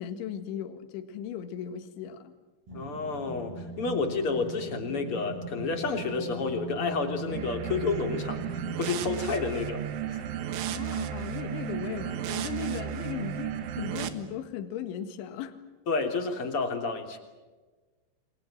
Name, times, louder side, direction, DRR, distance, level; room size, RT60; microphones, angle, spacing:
voice 1, 0.0-2.3 10.7-15.6, left 9 dB, 70° left, 8 dB, 3.9 m, -37 dB
voice 2, 2.7-10.2 15.9-17.2, left 4 dB, 30° left, 5 dB, 3.2 m, -30 dB
sound 1, 2.7-9.4, right 2 dB, 45° right, 8.1 m, -39 dB
sound 2, 7.3-14.1, right 10 dB, 70° right, 3.8 m, -34 dB
30.0 x 24.0 x 7.6 m, 1.3 s
omnidirectional pair, 6.0 m